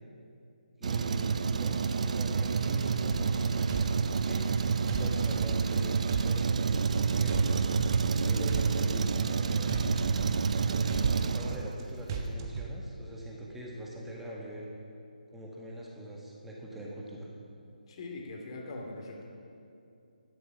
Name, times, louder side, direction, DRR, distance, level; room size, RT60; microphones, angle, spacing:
voice 1, 0.8-4.7 5.0-7.6 8.2-9.7 10.6-14.7 15.3-17.3, right 1 dB, 5° right, -4 dB, 1.7 m, -43 dB
Truck, 0.8-12.0, right 5 dB, 50° right, 0.6 m, -28 dB
sound 1, 3.1-3.4 3.7-4.6 4.9-5.8 6.1-7.0 7.3-8.2 8.5-9.4 9.7-10.6 10.9-11.8 12.1-12.7, right 5 dB, 30° right, 1.3 m, -36 dB
voice 2, 17.9-19.2, left 2 dB, 35° left, 1 dB, 2.5 m, -41 dB
12.5 x 11.5 x 6.3 m, 2.6 s
figure-of-eight pair, 150°, 5 cm